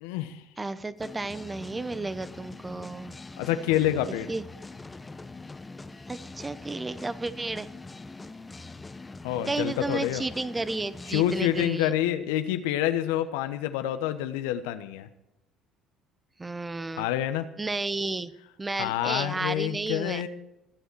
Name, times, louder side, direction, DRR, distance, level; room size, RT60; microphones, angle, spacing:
voice 1, 0.0-0.4 3.4-4.3 9.2-10.2 11.1-15.1 17.0-17.5 18.8-20.3, left 12 dB, 75° left, 10 dB, 1.0 m, -27 dB
voice 2, 0.6-3.2 4.3-4.5 6.1-7.7 9.5-11.9 16.4-17.1 17.6-18.3 18.6-20.2, right 3 dB, 20° right, 14 dB, 1.0 m, -32 dB
sound 1, 1.0-11.8, left 3 dB, 20° left, 1.0 m, -43 dB
21.5 x 8.1 x 4.7 m, 0.90 s
hypercardioid pair, 60°, 0 cm